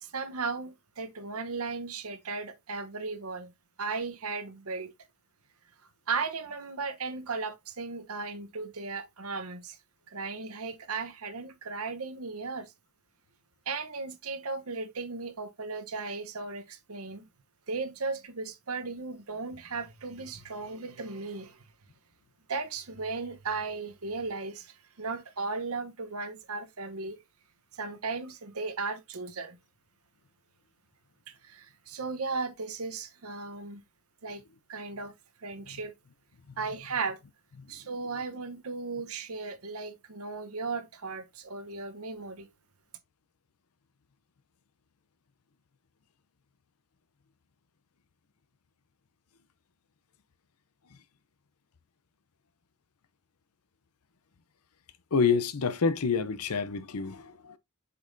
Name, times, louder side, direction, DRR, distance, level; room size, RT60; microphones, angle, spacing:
voice 1, 0.0-3.5 3.8-4.9 6.1-9.8 10.1-12.7 13.7-17.3 17.7-21.6 22.5-27.2 27.7-29.6 31.3-33.8 34.2-34.4 34.7-35.1 35.4-35.9 36.6-37.2 37.7-42.5, right 4 dB, 70° right, 1.0 m, -36 dB
voice 2, 55.1-57.6, left 5 dB, 85° left, 0.7 m, -28 dB
6.8 x 5.3 x 2.6 m
head